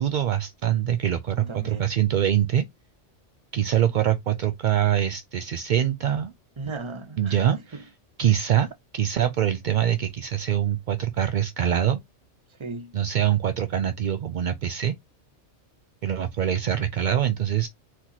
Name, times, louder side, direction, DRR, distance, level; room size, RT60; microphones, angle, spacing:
voice 1, 0.0-2.7 3.5-6.3 7.2-7.8 8.2-12.0 12.9-15.0 16.0-17.7, right 10 dB, 60° right, 0.5 m, -24 dB
voice 2, 1.3-1.9 6.6-7.8 12.5-13.0, right 3 dB, 30° right, 0.8 m, -37 dB
4.4 x 2.8 x 4.0 m
omnidirectional pair, 1.2 m